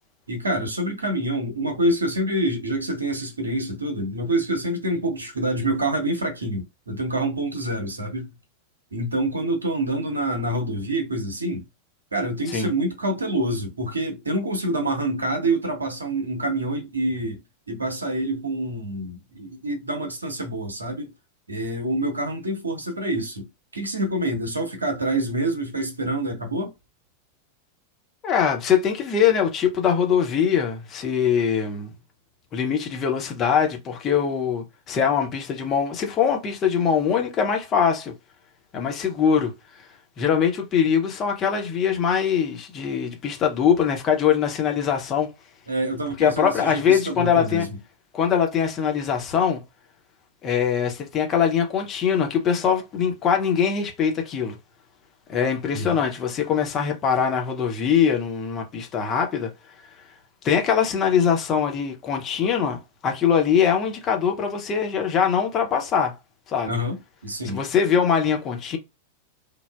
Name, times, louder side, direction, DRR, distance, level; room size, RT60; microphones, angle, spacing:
voice 1, 0.3-8.3 8.9-11.6 12.1-17.4 17.7-21.1 21.5-23.5 23.7-26.7 45.7-47.8 55.7-56.0 66.6-67.0 67.2-67.6, right 1 dB, 80° right, 0.8 m, -26 dB
voice 2, 28.2-31.9 32.5-38.1 38.7-39.5 40.2-45.3 46.2-47.7 48.1-49.6 50.4-54.6 55.3-59.5 60.4-66.1 66.5-66.7 67.4-68.8, left 7 dB, 30° left, 0.7 m, -22 dB
3.3 x 2.0 x 2.2 m
figure-of-eight pair, 90°, 0 cm